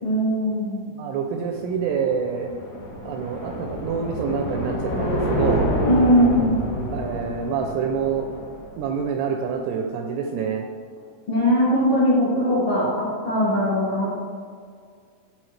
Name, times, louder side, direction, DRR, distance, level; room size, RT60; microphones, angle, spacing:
voice 1, 0.0-0.8 5.9-6.7 11.3-14.2, equal, 50° left, -9 dB, 1.9 m, -20 dB
voice 2, 1.0-2.5 3.0-5.7 6.9-8.3 8.8-10.6, right 6 dB, 80° right, 3 dB, 2.4 m, -26 dB
sound 1, 1.7-9.0, equal, 65° left, 1.4 m, -28 dB
13.5 x 5.1 x 3.3 m, 2.1 s
omnidirectional pair, 5.2 m